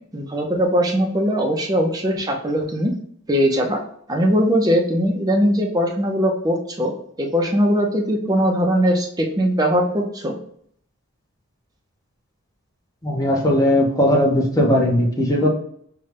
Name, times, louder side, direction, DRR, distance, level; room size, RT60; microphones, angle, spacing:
voice 1, 0.1-2.9 3.3-3.8 4.1-6.9 7.2-10.4, equal, 15° right, 0 dB, 0.6 m, -20 dB
voice 2, 13.0-15.5, left 1 dB, 15° left, -1 dB, 0.8 m, -18 dB
5.3 x 2.3 x 3.3 m, 0.67 s
head